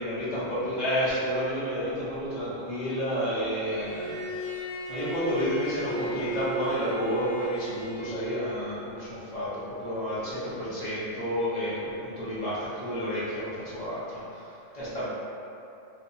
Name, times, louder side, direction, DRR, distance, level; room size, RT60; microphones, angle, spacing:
voice 1, 0.0-15.1, equal, 40° left, -10 dB, 0.7 m, -31 dB
Bowed string instrument, 3.6-8.5, equal, 70° left, 0.9 m, -35 dB
4.3 x 2.1 x 2.6 m, 2.7 s
omnidirectional pair, 1.4 m